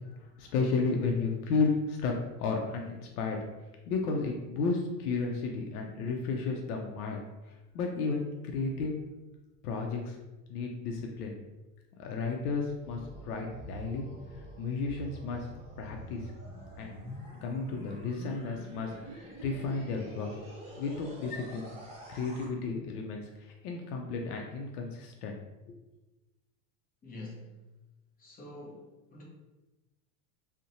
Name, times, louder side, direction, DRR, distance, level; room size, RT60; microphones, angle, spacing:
voice 1, 0.2-3.4 3.9-8.9 9.6-10.2 10.5-11.4 12.0-14.1 14.3-15.5 15.8-16.3 16.8-17.1 17.4-18.9 19.4-20.3 20.8-21.7 22.1-25.4 25.7-25.8, left 4 dB, 85° left, 1 dB, 0.5 m, -33 dB
sound 1, 12.4-22.5, right 1 dB, 15° right, 0.7 m, -46 dB
voice 2, 27.0-27.4 28.2-29.2, left 2 dB, 20° left, -2 dB, 0.6 m, -46 dB
2.5 x 2.1 x 2.7 m, 1.1 s
supercardioid pair, 110°, 44 cm